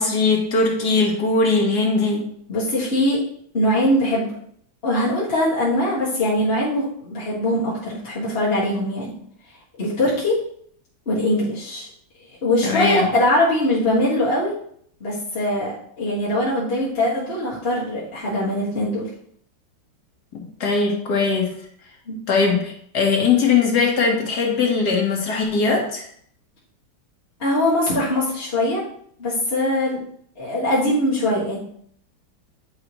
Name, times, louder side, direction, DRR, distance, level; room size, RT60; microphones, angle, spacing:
voice 1, 0.0-2.2 12.6-13.1 20.6-21.5 22.3-26.1, left 4 dB, 60° left, 0 dB, 1.9 m, -20 dB
voice 2, 2.5-3.2 3.5-4.3 4.8-9.1 9.8-10.4 11.1-11.9 12.4-14.5 15.0-19.1 22.1-22.2 27.4-28.8 29.2-30.0 30.4-31.6, left 1 dB, 35° left, -8 dB, 1.9 m, -22 dB
9.5 x 4.9 x 3.0 m, 0.65 s
omnidirectional pair, 2.0 m